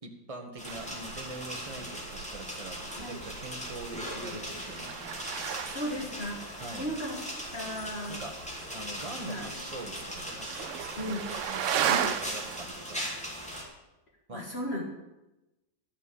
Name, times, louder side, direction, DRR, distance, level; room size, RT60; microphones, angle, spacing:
voice 1, 0.0-5.1 6.6-6.9 8.1-11.9 12.2-13.1 14.3-14.4, right 2 dB, 20° right, 3 dB, 1.2 m, -43 dB
sound 1, 0.6-13.6, equal, 5° left, 2.1 m, -39 dB
sound 2, 0.7-12.7, right 9 dB, 70° right, 0.7 m, -37 dB
voice 2, 5.6-7.2 7.5-8.2 9.2-9.5 10.9-11.3 11.8-12.2 14.3-14.8, equal, 35° left, -1 dB, 1.8 m, -36 dB
12.0 x 5.8 x 8.5 m, 1.0 s
omnidirectional pair, 1.9 m